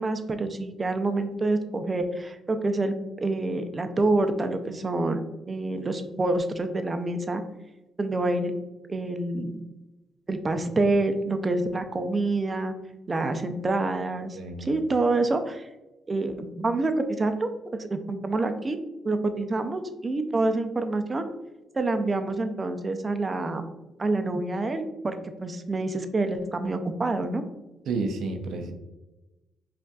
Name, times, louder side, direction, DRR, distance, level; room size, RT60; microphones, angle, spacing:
voice 1, 0.0-7.4 8.0-8.5 8.9-9.6 10.3-12.7 13.1-15.7 16.1-18.8 19.0-21.2 21.7-23.6 24.0-25.2 25.4-27.4, right 2 dB, 30° right, 8 dB, 0.5 m, -27 dB
voice 2, 14.3-14.7 27.9-28.7, right 3 dB, 75° right, 5 dB, 0.5 m, -30 dB
5.3 x 2.5 x 2.3 m, 1.0 s
cardioid pair, 90°, 0 cm